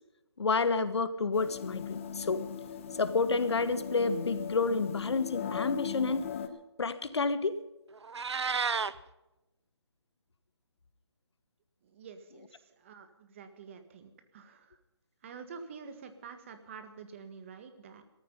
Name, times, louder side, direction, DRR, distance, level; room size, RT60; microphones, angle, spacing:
voice 1, 0.4-2.4 2.9-6.3 6.8-7.6, left 4 dB, 70° left, 12 dB, 1.5 m, -29 dB
sound 1, 1.3-6.5, left 7 dB, 30° left, 1.3 m, -39 dB
Meow, 7.9-8.9, right 5 dB, 75° right, 0.9 m, -31 dB
voice 2, 11.8-14.8 15.2-18.0, right 5 dB, 30° right, 8 dB, 1.7 m, -48 dB
17.5 x 14.0 x 5.5 m, 0.95 s
hypercardioid pair, 165°, 14 cm